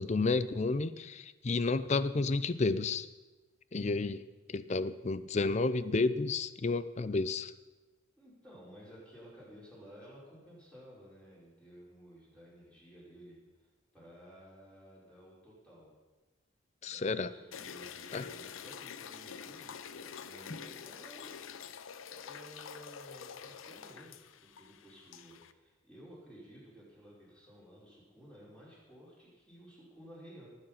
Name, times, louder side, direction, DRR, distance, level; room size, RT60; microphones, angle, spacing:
voice 1, 0.0-3.1 3.7-4.2 4.5-7.5 16.8-17.3 18.1-18.2, left 3 dB, 35° left, 15 dB, 0.5 m, -31 dB
voice 2, 8.2-15.9 16.8-21.4 22.1-30.5, equal, 5° left, -7 dB, 5.2 m, -54 dB
sound 1, 17.5-25.5, left 7 dB, 90° left, 0.6 m, -47 dB
19.0 x 8.0 x 5.7 m, 1.2 s
head